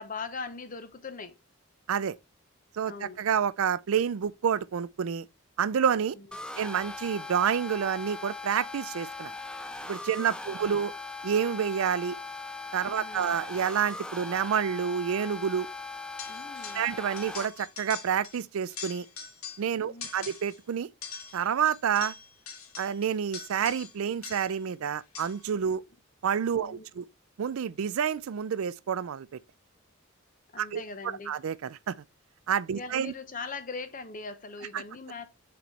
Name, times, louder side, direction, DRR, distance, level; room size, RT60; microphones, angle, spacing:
voice 1, 0.0-1.4 2.8-3.2 6.1-6.3 10.2-10.8 12.8-13.4 16.3-16.9 19.8-20.3 26.6-27.0 30.5-31.4 32.7-35.3, left 4 dB, 40° left, 0.8 m, -41 dB
voice 2, 2.7-5.3 5.6-6.2 6.6-9.3 9.9-10.9 11.2-12.2 12.7-15.7 16.7-19.1 19.6-20.9 21.3-22.1 22.8-25.8 26.2-27.0 27.4-29.4 30.6-32.0 32.5-33.1 34.7-34.8, right 7 dB, 75° right, 0.4 m, -29 dB
sound 1, 6.3-17.5, left 3 dB, 5° left, 0.3 m, -40 dB
sound 2, 16.2-16.9 17.2-18.4 18.7-19.7 20.0-20.6 21.0-24.6 25.1-25.5, left 6 dB, 80° left, 1.4 m, -43 dB
7.5 x 4.0 x 3.2 m
head